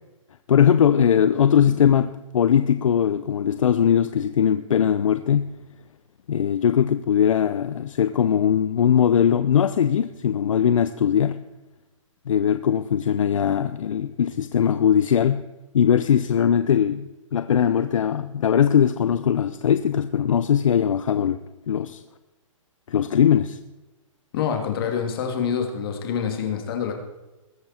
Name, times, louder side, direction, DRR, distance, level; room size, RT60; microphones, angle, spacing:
voice 1, 0.5-5.6 6.3-11.4 12.3-15.4 15.7-22.0 22.9-23.6, left 8 dB, 70° left, 0.7 m, -20 dB
voice 2, 24.3-26.9, left 7 dB, 45° left, 2.9 m, -26 dB
21.0 x 7.9 x 4.5 m
hypercardioid pair, 155°, 17 cm